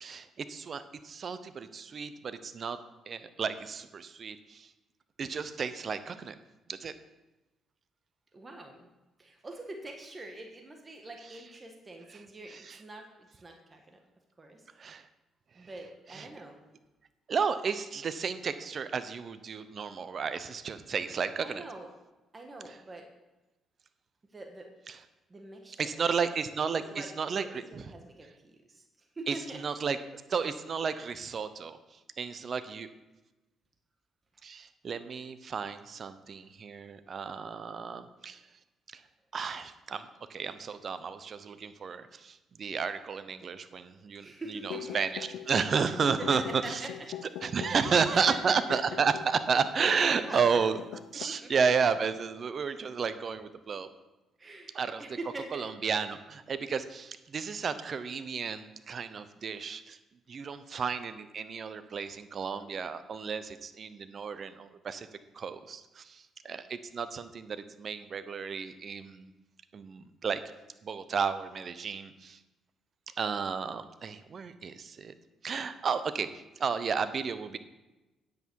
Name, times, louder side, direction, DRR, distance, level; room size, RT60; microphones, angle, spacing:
voice 1, 0.0-2.8 3.1-4.7 5.2-6.3 6.7-6.9 12.1-12.2 12.5-12.8 14.8-15.1 16.1-16.3 17.3-21.6 24.9-25.0 25.8-27.8 29.3-30.0 30.3-32.9 34.4-38.4 38.9-39.0 39.3-46.8 47.4-50.8 51.1-53.9 54.7-55.0 55.5-60.0 60.3-65.1 65.3-69.3 69.7-70.4 70.8-72.4 73.2-75.1 75.4-77.6, right 6 dB, 50° right, 12 dB, 0.8 m, -32 dB
voice 2, 8.3-8.9 9.2-14.0 14.4-14.6 15.5-16.6 21.4-21.9 22.3-23.1 24.3-24.7 25.3-26.0 26.5-28.8 29.1-29.6 34.3-34.4 44.2-45.0 46.2-46.9 47.7-48.4 49.8-50.7 51.3-51.5 54.4-55.7, right 2 dB, 30° right, 3 dB, 1.4 m, -44 dB
sound 1, 44.7-50.1 50.4-50.5 50.8-51.2, left 10 dB, 85° left, 0.5 m, -42 dB
9.4 x 8.2 x 4.7 m, 1.0 s
cardioid pair, 75°, 0 cm